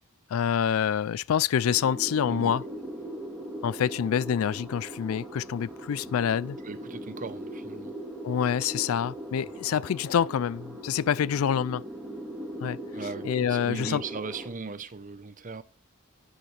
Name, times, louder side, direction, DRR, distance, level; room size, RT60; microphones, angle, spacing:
voice 1, 0.3-2.6 3.6-6.6 8.2-11.8 12.6-12.8 13.2-14.0, left 8 dB, 80° left, 0.3 m, -26 dB
sound 1, 1.6-14.5, right 1 dB, 5° right, 2.8 m, -40 dB
voice 2, 6.6-8.0 12.9-15.6, right 4 dB, 40° right, 0.8 m, -38 dB
10.5 x 8.6 x 3.2 m
head